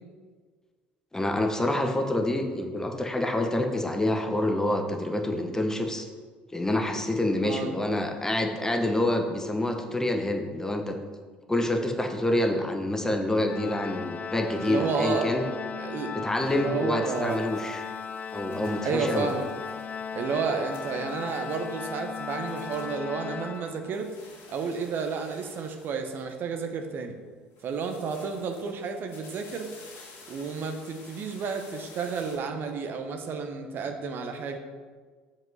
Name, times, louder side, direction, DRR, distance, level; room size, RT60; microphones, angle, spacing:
voice 1, 1.1-6.1 6.5-11.0 11.5-15.4 16.1-17.8 18.3-19.3, left 1 dB, 10° left, 4 dB, 1.0 m, -27 dB
voice 2, 7.4-7.7 14.6-15.4 15.7-17.4 18.8-19.5 20.1-24.1 24.5-27.2 27.6-29.7 30.3-34.6, right 5 dB, 45° right, 5 dB, 0.9 m, -31 dB
Organ, 13.5-24.2, left 7 dB, 30° left, 0.3 m, -37 dB
sound 1, 17.0-23.6 23.8-26.7 27.5-32.4, left 3 dB, 55° left, 2.6 m, -52 dB
7.5 x 5.3 x 5.4 m, 1.5 s
figure-of-eight pair, 60°, 5 cm